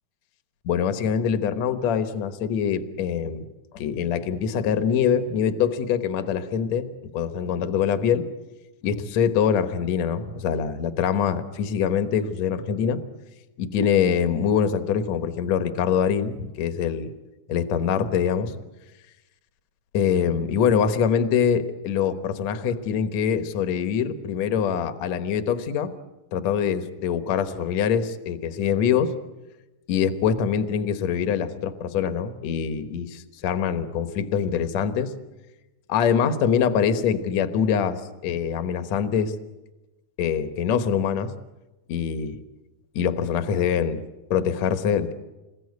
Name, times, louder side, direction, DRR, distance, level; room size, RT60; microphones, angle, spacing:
voice 1, 0.6-3.5 3.7-6.9 7.1-8.2 8.8-13.0 13.6-17.1 17.5-18.5 19.9-25.9 26.3-29.1 29.9-35.1 35.9-39.3 40.2-41.3 41.9-42.4 42.9-44.0 44.3-45.1, left 7 dB, 60° left, 10 dB, 2.4 m, -24 dB
27.5 x 21.5 x 9.6 m, 1.0 s
omnidirectional pair, 3.8 m